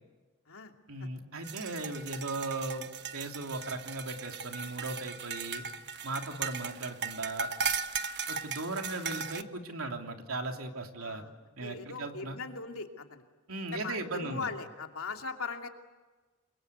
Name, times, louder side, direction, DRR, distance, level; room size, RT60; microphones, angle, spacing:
voice 1, 0.9-2.9 3.1-5.6 6.0-7.5 8.3-11.2 11.6-12.4 13.5-14.5, right 2 dB, 80° right, 3 dB, 3.2 m, -37 dB
sound 1, 1.4-9.4, right 6 dB, 55° right, 1.2 m, -37 dB
voice 2, 11.0-11.4 11.6-13.2 13.7-15.7, left 4 dB, 80° left, 3 dB, 2.8 m, -39 dB
30.0 x 23.5 x 8.2 m, 1.3 s
head